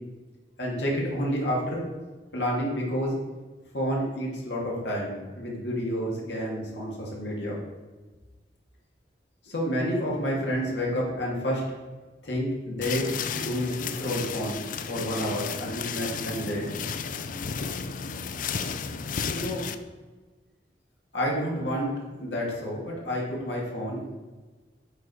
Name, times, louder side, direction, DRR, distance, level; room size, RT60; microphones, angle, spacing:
voice 1, 0.6-1.8 2.3-3.2 3.7-7.6 9.4-11.7 12.2-14.6 14.9-16.6 19.3-19.6 21.1-21.9 22.2-24.0, equal, 85° left, -3 dB, 2.4 m, -29 dB
sound 1, 12.8-19.7, left 6 dB, 50° left, 0.4 m, -33 dB
8.3 x 4.7 x 4.9 m, 1.3 s
head